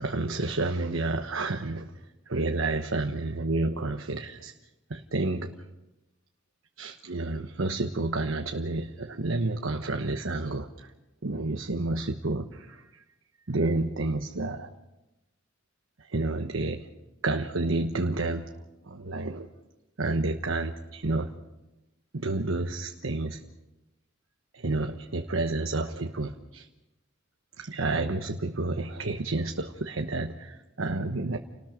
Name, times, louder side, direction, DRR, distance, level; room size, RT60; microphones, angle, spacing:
voice 1, 0.0-1.9 2.3-4.5 4.9-5.5 6.8-10.9 11.2-12.8 13.5-14.7 16.1-16.9 17.2-18.5 18.9-19.5 20.0-21.3 22.1-23.4 24.5-26.7 27.6-31.4, right 2 dB, 85° right, 5 dB, 1.1 m, -30 dB
30.0 x 19.5 x 5.1 m, 0.99 s
head